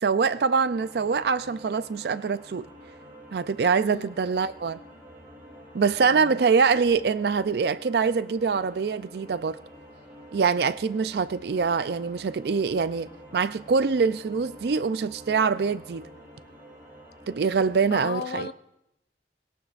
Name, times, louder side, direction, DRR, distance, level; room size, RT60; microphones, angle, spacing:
voice 1, 0.0-2.7 3.3-4.8 5.7-9.6 10.3-16.1 17.3-18.5, right 5 dB, 60° right, 0.4 m, -24 dB
sound 1, 0.6-17.9, equal, 15° right, 6.1 m, -48 dB
voice 2, 6.0-6.4 17.9-18.5, left 5 dB, 60° left, 0.5 m, -35 dB
20.5 x 17.5 x 2.5 m
head